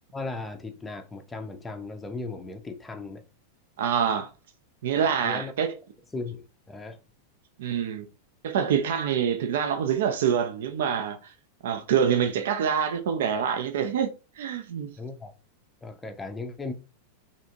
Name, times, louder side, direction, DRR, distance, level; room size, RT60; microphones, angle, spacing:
voice 1, 0.1-3.2 5.0-5.5 6.1-7.0 15.0-15.3 15.8-16.7, left 3 dB, 10° left, 0.5 m, -37 dB
voice 2, 3.8-4.3 4.8-5.8 7.6-8.1 8.4-11.3 11.6-14.9, right 8 dB, 55° right, 0.3 m, -26 dB
3.3 x 2.6 x 2.6 m
figure-of-eight pair, 90°, 0 cm